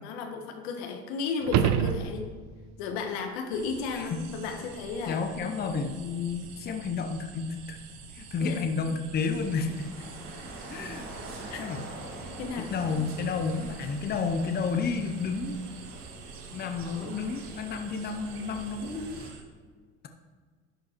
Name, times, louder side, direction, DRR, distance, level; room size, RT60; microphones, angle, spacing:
voice 1, 0.0-2.2 2.8-5.2 8.4-8.6 11.5-11.6 12.4-12.7, left 5 dB, 90° left, 4 dB, 1.4 m, -34 dB
sound 1, 1.4-2.7 7.5-7.6, right 9 dB, 60° right, 0.7 m, -26 dB
sound 2, 3.5-19.4, right 5 dB, 80° right, 1.3 m, -47 dB
voice 2, 5.1-7.8 8.1-9.9 10.7-11.1 11.6-11.8 12.6-15.6 16.5-19.2, left 5 dB, 30° left, 6 dB, 0.8 m, -31 dB
sound 3, 9.2-19.3, right 2 dB, 45° right, 2.9 m, -44 dB
11.0 x 5.3 x 4.5 m, 1.5 s
cardioid pair, 120°, 32 cm